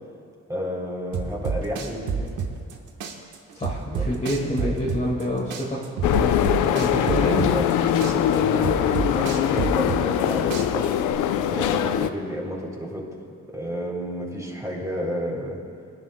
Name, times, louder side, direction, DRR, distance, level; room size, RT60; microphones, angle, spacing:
voice 1, 0.5-2.3 3.9-4.8 6.9-10.9 11.3-13.1 13.5-15.6, equal, 10° right, -2 dB, 3.2 m, -31 dB
sound 1, 1.1-2.7 3.0-5.2 5.5-7.7 8.0-10.2 10.5-11.1, right 6 dB, 80° right, 1.3 m, -28 dB
voice 2, 3.6-7.4, equal, 25° left, -4 dB, 1.9 m, -28 dB
sound 2, 6.0-12.1, left 10 dB, 85° left, 0.6 m, -22 dB
22.0 x 10.5 x 2.2 m, 2.4 s
cardioid pair, 90°, 30 cm